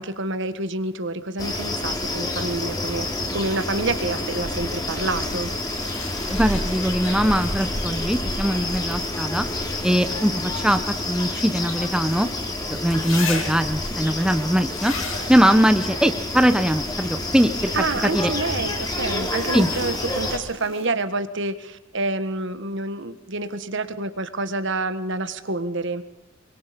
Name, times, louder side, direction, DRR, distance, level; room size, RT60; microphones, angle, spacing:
voice 1, 0.0-3.1 3.3-5.5 12.7-12.9 17.7-26.0, right 2 dB, 60° right, 11 dB, 1.6 m, -28 dB
sound 1, 1.4-20.4, left 1 dB, 20° left, 3.5 m, -28 dB
sound 2, 5.1-8.3 9.0-12.2 12.9-13.8 14.7-15.4 18.4-21.1 23.0-23.1, left 4 dB, 70° left, 7.0 m, -38 dB
voice 2, 6.3-9.4 9.8-12.3 12.7-14.9 15.3-17.7 18.1-18.3 19.5-19.7, equal, 5° right, 8 dB, 0.9 m, -21 dB
26.0 x 23.5 x 5.3 m, 0.95 s
head